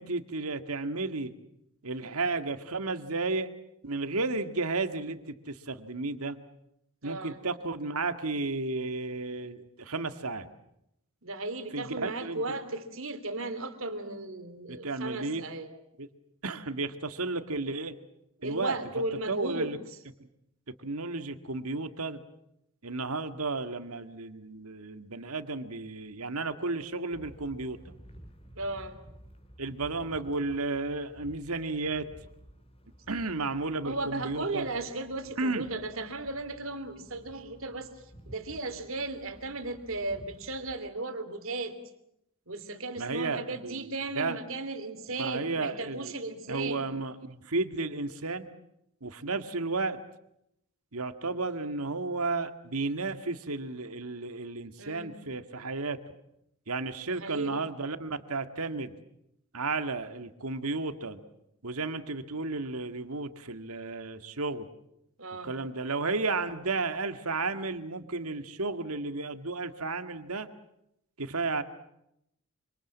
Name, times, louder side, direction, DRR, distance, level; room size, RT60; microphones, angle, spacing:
voice 1, 0.0-1.3 1.8-3.5 3.8-6.4 7.0-10.5 11.7-12.4 14.7-15.4 16.0-16.1 16.4-18.0 18.4-18.8 19.3-19.8 20.2-20.3 20.8-22.2 22.8-27.9 29.6-32.1 33.1-34.7 35.4-35.7 43.0-43.9 44.2-44.4 45.2-46.1 46.5-48.5 49.0-50.0 50.9-56.0 56.7-58.9 59.5-61.2 61.6-64.7 65.4-70.5 71.2-71.6, right 3 dB, 80° right, 9 dB, 1.9 m, -33 dB
voice 2, 7.0-7.4 11.2-15.7 18.4-19.7 28.6-29.0 33.8-37.9 38.3-41.8 42.5-46.8 54.8-55.2 57.1-57.7 65.2-65.5, right 2 dB, 65° right, 9 dB, 3.0 m, -36 dB
sound 1, 27.1-40.8, equal, 25° left, 3.3 m, -53 dB
26.5 x 26.0 x 7.4 m, 0.79 s
head